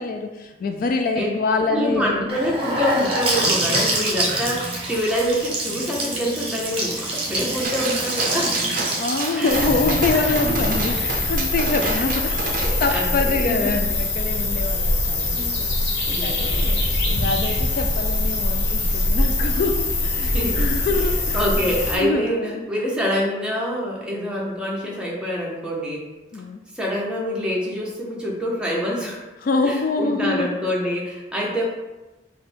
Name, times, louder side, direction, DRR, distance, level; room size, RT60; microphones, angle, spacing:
voice 1, 0.0-2.4 9.0-16.0 16.2-22.7 26.3-26.6 29.4-30.5, left 3 dB, 55° left, 5 dB, 0.3 m, -25 dB
voice 2, 1.7-8.6 9.4-9.7 10.5-10.6 11.8-12.1 12.6-13.7 15.3-15.6 16.1-16.7 20.2-20.6 20.9-26.1 26.7-29.2 29.6-31.6, equal, 5° right, -4 dB, 0.9 m, -26 dB
Gurgling / Sink (filling or washing) / Bathtub (filling or washing), 2.3-12.1, right 1 dB, 30° right, 1.0 m, -26 dB
Gunshot gunfire, 7.6-13.1, right 3 dB, 50° right, 0.5 m, -30 dB
sound 1, 9.5-22.0, left 2 dB, 80° left, 0.9 m, -23 dB
5.0 x 2.2 x 4.3 m, 1.1 s
head